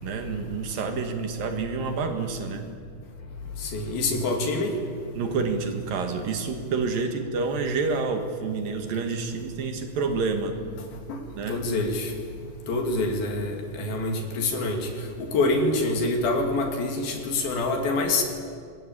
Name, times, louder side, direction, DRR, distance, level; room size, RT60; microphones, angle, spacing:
voice 1, 0.0-2.7 5.1-10.6 11.3-11.6, right 4 dB, 65° right, 6 dB, 3.5 m, -28 dB
voice 2, 3.7-4.7 11.5-12.1 12.7-14.9 15.2-18.2, left 2 dB, 70° left, 4 dB, 4.5 m, -26 dB
25.0 x 20.5 x 8.8 m, 2.2 s
omnidirectional pair, 4.4 m